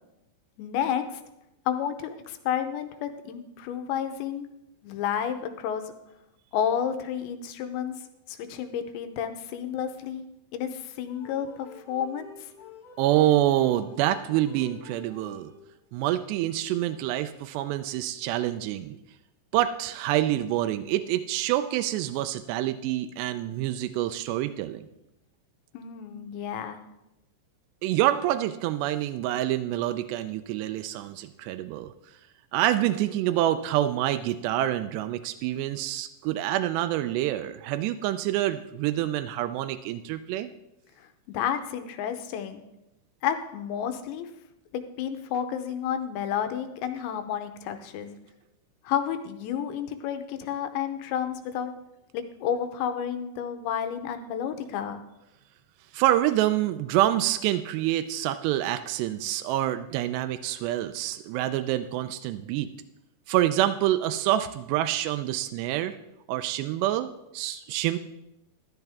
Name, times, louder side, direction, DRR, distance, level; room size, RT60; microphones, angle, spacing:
voice 1, 0.6-1.2 1.7-4.5 4.8-5.9 6.5-7.9 8.3-10.2 10.5-12.5 25.7-26.8 41.0-42.6 43.2-44.3 44.7-48.2 48.8-51.7 52.1-55.0, left 8 dB, 80° left, 8 dB, 3.0 m, -31 dB
sound 1, 11.1-16.0, left 6 dB, 55° left, 2.8 m, -48 dB
voice 2, 13.0-15.5 15.9-19.0 19.5-24.8 27.8-31.9 32.5-40.5 55.9-62.7 63.3-66.0 66.3-68.0, right 13 dB, 85° right, 9 dB, 2.5 m, -27 dB
13.5 x 12.0 x 3.5 m, 0.88 s
omnidirectional pair, 5.3 m